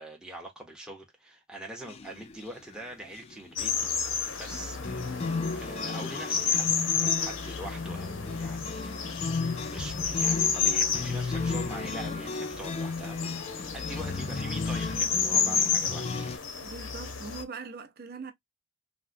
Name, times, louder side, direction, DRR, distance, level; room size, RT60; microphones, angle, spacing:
voice 1, 0.0-4.8 5.6-16.3, right 1 dB, 5° right, 0.7 m, -43 dB
sound 1, 1.8-2.4 2.7-2.8 3.2-3.4 4.5-16.4, left 4 dB, 30° left, 0.3 m, -34 dB
sound 2, 3.6-17.4, left 6 dB, 75° left, 0.7 m, -31 dB
voice 2, 16.6-18.3, right 5 dB, 50° right, 0.6 m, -42 dB
3.6 x 2.1 x 2.4 m
head